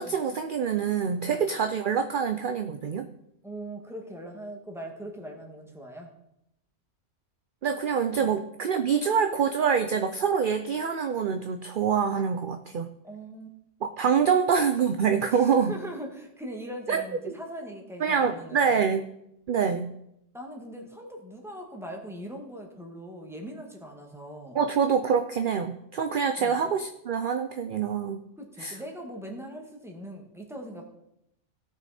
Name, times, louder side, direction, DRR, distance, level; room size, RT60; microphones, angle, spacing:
voice 1, 0.0-3.1 7.6-12.9 13.8-15.7 16.9-17.0 18.0-19.0 19.5-19.9 24.5-28.2 28.6-28.8, right 6 dB, 55° right, 8 dB, 0.7 m, -25 dB
voice 2, 3.4-6.1 8.2-8.3 13.0-13.5 15.3-18.8 20.3-24.6 26.4-26.6 28.4-30.8, right 1 dB, ahead, 0 dB, 1.9 m, -41 dB
17.0 x 6.4 x 4.2 m, 0.80 s
omnidirectional pair, 1.3 m